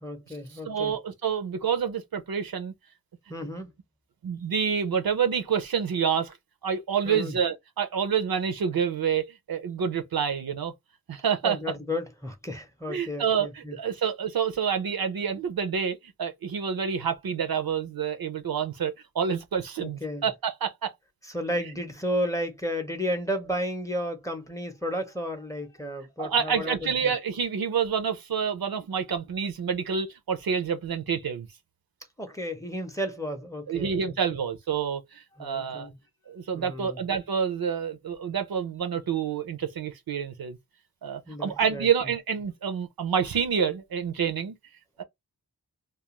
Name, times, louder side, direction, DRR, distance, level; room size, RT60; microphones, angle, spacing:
voice 1, 0.0-0.9 3.3-3.7 7.0-7.3 11.4-13.8 19.8-20.3 21.2-27.1 32.2-34.2 35.4-36.0 36.5-37.0 41.3-41.9, equal, 10° left, 0.6 m, -33 dB
voice 2, 0.7-2.7 4.2-6.3 6.6-10.7 11.1-11.6 12.9-20.9 26.2-31.5 33.7-35.9 36.3-40.6 41.0-44.5 45.0-45.1, right 7 dB, 70° right, 0.5 m, -28 dB
2.4 x 2.2 x 2.9 m
wide cardioid pair, 85°, 37 cm